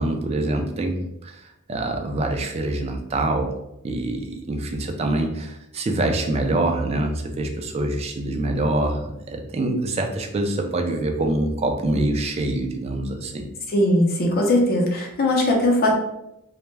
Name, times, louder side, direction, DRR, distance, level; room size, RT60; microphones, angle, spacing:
voice 1, 0.0-3.5 3.8-13.5, right 2 dB, 30° right, 3 dB, 0.3 m, -25 dB
voice 2, 13.7-16.0, left 1 dB, 45° left, 0 dB, 0.5 m, -19 dB
2.1 x 2.1 x 3.1 m, 0.86 s
head